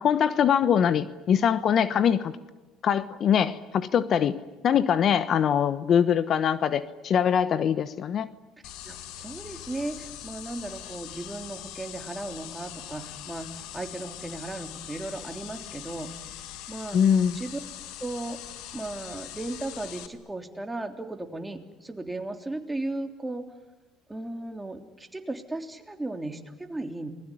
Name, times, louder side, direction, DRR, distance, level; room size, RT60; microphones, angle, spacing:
voice 1, 0.0-2.3 2.8-4.4 4.6-8.3 16.9-17.4, left 8 dB, 50° left, 14 dB, 1.1 m, -23 dB
sound 1, 8.6-20.1, left 12 dB, 80° left, 1.9 m, -42 dB
voice 2, 8.9-16.1 16.7-17.0 17.3-17.6 18.0-18.4 18.7-23.4 24.1-27.1, right 2 dB, 10° right, 4 dB, 3.3 m, -36 dB
29.0 x 20.5 x 10.0 m, 1.1 s
supercardioid pair, 95°, 0 cm